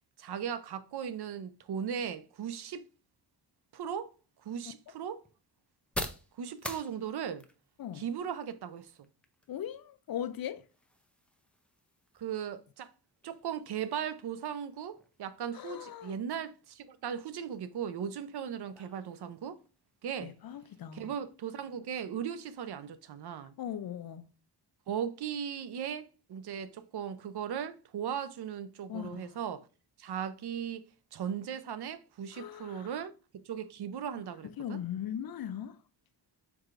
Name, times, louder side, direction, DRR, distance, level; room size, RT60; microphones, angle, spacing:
voice 1, 0.2-2.8 3.7-4.1 4.4-5.2 6.4-7.4 8.0-8.9 12.2-12.9 13.2-19.6 20.0-20.3 20.9-23.5 24.9-29.7 30.0-30.9 31.1-34.8, right 8 dB, 65° right, 0.5 m, -37 dB
sound 1, 3.8-21.4, left 1 dB, 5° left, 0.5 m, -49 dB
voice 2, 9.5-10.6 15.5-16.1 20.2-21.1 23.6-24.2 28.9-29.4 32.3-33.1 34.4-35.8, left 10 dB, 55° left, 0.5 m, -39 dB
4.7 x 4.5 x 2.4 m
wide cardioid pair, 110°, 43 cm